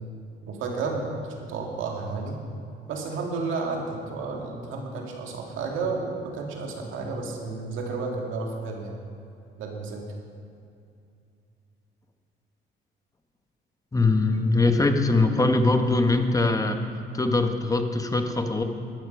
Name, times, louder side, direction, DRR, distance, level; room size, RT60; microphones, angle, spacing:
voice 1, 0.5-2.4 2.9-9.0 9.6-10.0, right 4 dB, 85° right, 0 dB, 2.1 m, -32 dB
voice 2, 13.9-16.8 17.1-18.6, left 2 dB, 15° left, 6 dB, 1.1 m, -22 dB
12.5 x 9.5 x 5.2 m, 2.5 s
cardioid pair, 90°, 20 cm